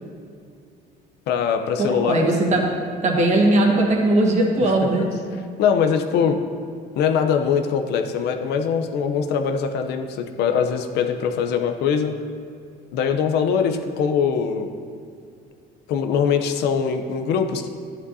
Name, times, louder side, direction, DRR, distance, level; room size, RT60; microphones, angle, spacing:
voice 1, 1.3-2.2 4.6-4.7 5.0-5.1 5.6-6.4 7.0-12.2 12.9-14.7 15.9-17.7, left 7 dB, 80° left, 6 dB, 0.7 m, -22 dB
voice 2, 1.8-2.7 3.0-5.1, right 2 dB, 45° right, 0 dB, 1.6 m, -19 dB
11.5 x 9.3 x 2.7 m, 2.3 s
cardioid pair, 110°, 17 cm